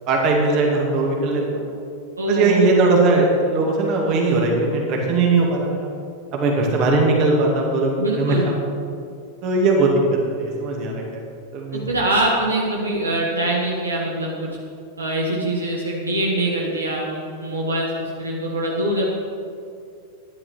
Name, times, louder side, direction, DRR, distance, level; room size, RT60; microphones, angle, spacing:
voice 1, 0.1-1.7 2.2-5.9 6.3-8.5 9.4-9.9 10.2-11.2 11.5-11.9, right 3 dB, 40° right, -1 dB, 2.4 m, -19 dB
voice 2, 2.2-3.3 8.0-8.5 11.7-14.5 15.0-19.1, right 1 dB, 75° right, -2 dB, 1.6 m, -23 dB
12.5 x 10.5 x 4.5 m, 2.4 s
figure-of-eight pair, 90°, 0 cm